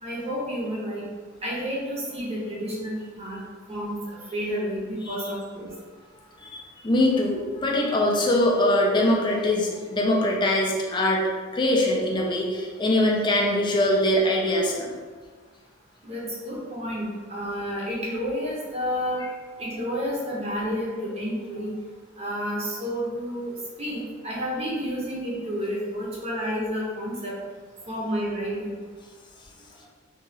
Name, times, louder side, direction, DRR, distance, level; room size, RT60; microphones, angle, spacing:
voice 1, 0.0-1.0 1.4-3.4 3.7-3.9 4.3-5.7 16.0-19.2 19.6-21.7 22.2-27.3 27.9-28.7, equal, 30° right, -5 dB, 0.7 m, -30 dB
voice 2, 6.4-11.2 11.5-14.9, left 1 dB, 25° left, -2 dB, 0.4 m, -22 dB
2.6 x 2.3 x 3.1 m, 1.5 s
head